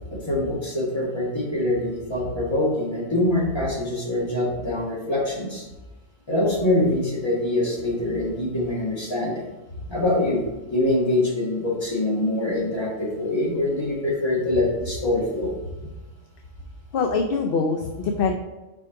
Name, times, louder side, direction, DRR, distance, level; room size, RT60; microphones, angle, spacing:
voice 1, 0.1-5.6 6.3-9.4 9.9-10.4 10.7-15.5, left 1 dB, 20° left, -5 dB, 1.7 m, -24 dB
voice 2, 16.9-18.3, left 4 dB, 60° left, 3 dB, 0.6 m, -23 dB
5.1 x 4.7 x 4.7 m, 1.1 s
omnidirectional pair, 1.3 m